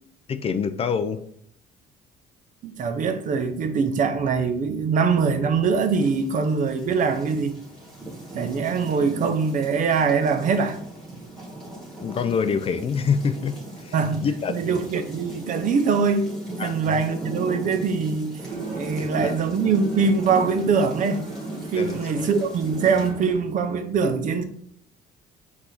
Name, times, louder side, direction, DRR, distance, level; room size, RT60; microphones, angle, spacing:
voice 1, 0.3-1.2 12.0-14.0 14.2-14.7 16.6-17.0 19.0-19.3 21.8-22.0, left 6 dB, 35° left, 0.3 m, -26 dB
voice 2, 2.6-7.6 8.3-10.8 13.9-16.3 16.6-18.4 18.7-21.2 21.7-24.4, right 5 dB, 50° right, 0.6 m, -23 dB
sound 1, 5.8-23.1, right 1 dB, 5° left, 1.4 m, -38 dB
sound 2, 18.4-23.3, right 3 dB, 70° right, 1.7 m, -37 dB
4.6 x 2.7 x 3.8 m
cardioid pair, 110°, 17 cm